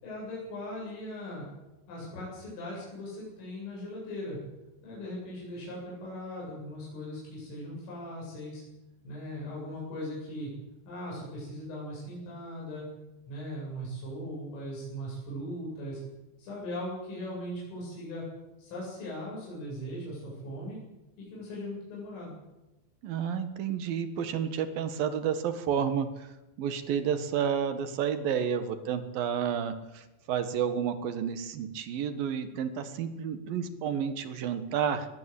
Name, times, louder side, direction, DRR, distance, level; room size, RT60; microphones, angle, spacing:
voice 1, 0.0-1.5 1.9-4.4 4.8-8.6 9.0-10.5 10.9-12.9 13.3-16.0 16.4-18.2 18.6-20.8 21.2-22.3, equal, 85° left, -5 dB, 11.0 m, -39 dB
voice 2, 23.0-26.3 26.6-35.1, right 8 dB, 60° right, 10 dB, 2.8 m, -31 dB
22.0 x 20.5 x 8.4 m, 1.0 s
omnidirectional pair, 5.6 m